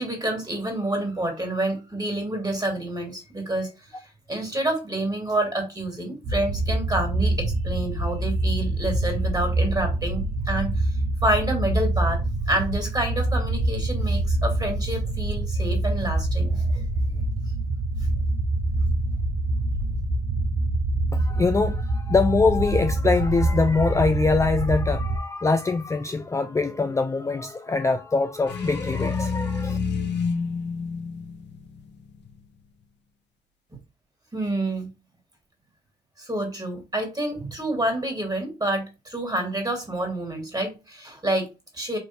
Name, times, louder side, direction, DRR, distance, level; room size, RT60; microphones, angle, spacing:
voice 1, 0.0-11.0 11.2-16.8 17.1-17.2 34.3-34.9 36.2-42.0, right 1 dB, 20° right, 2.1 m, -28 dB
sound 1, 6.2-25.2, right 2 dB, 75° right, 0.7 m, -25 dB
voice 2, 21.1-29.8, left 3 dB, 15° left, 0.4 m, -23 dB
sound 2, 28.5-32.4, left 5 dB, 70° left, 0.8 m, -29 dB
3.2 x 2.6 x 4.3 m
supercardioid pair, 55°, 19 cm